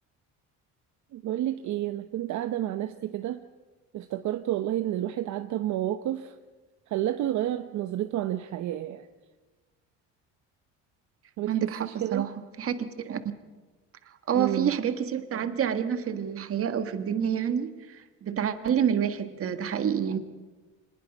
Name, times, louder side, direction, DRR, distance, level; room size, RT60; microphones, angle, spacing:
voice 1, 1.1-3.4 3.9-6.4 6.9-9.1 11.4-12.3 14.3-14.8, right 13 dB, 60° right, 9 dB, 0.9 m, -30 dB
voice 2, 11.5-12.3 12.6-13.2 14.3-20.2, right 8 dB, 40° right, 9 dB, 1.6 m, -28 dB
25.0 x 20.0 x 5.4 m, 1.3 s
cardioid pair, 115°, 33 cm